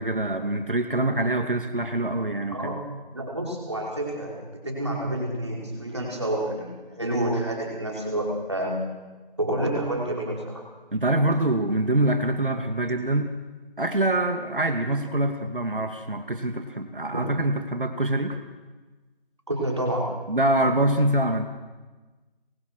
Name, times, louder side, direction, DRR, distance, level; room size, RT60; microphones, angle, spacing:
voice 1, 0.0-2.8 10.9-13.4 13.8-18.4 20.3-21.4, right 1 dB, 65° right, 6 dB, 2.6 m, -25 dB
voice 2, 2.5-2.8 3.1-4.3 4.6-8.9 9.4-10.6 19.5-20.2, right 1 dB, 30° right, -2 dB, 5.4 m, -28 dB
28.5 x 22.5 x 6.4 m, 1.2 s
figure-of-eight pair, 180°, 29 cm